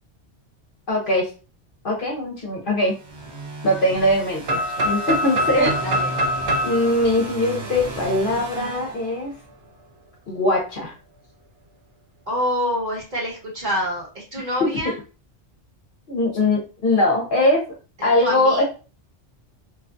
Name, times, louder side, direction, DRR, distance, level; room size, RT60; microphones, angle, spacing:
voice 1, 0.9-1.3 1.8-2.9 3.6-5.7 6.6-9.3 10.3-10.9 14.6-14.7 16.1-17.6 18.0-18.6, left 1 dB, 55° left, 0 dB, 0.9 m, -21 dB
sound 1, 2.9-9.6, right 2 dB, 70° right, 1.0 m, -35 dB
sound 2, 4.5-8.3, equal, 90° right, 1.0 m, -25 dB
voice 2, 5.6-6.1 12.3-15.0 18.0-18.6, equal, 40° right, -4 dB, 1.4 m, -26 dB
2.9 x 2.3 x 2.5 m, 0.34 s
omnidirectional pair, 1.2 m